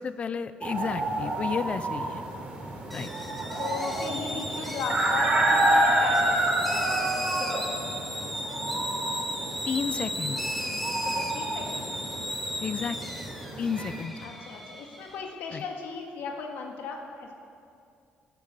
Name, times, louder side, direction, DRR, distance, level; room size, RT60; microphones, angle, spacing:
voice 1, 0.0-2.2 2.9-3.1 9.7-10.4 12.6-13.0 13.6-14.1 15.5-15.6, left 6 dB, 35° left, 13 dB, 0.4 m, -31 dB
sound 1, 0.6-14.0, right 1 dB, 35° right, 3.7 m, -29 dB
sound 2, 2.9-15.2, equal, 5° left, 1.3 m, -35 dB
voice 2, 3.6-7.8 11.0-11.9 14.2-17.3, left 4 dB, 80° left, 1 dB, 1.8 m, -37 dB
16.5 x 9.9 x 6.7 m, 2.4 s
cardioid pair, 125°, 3 cm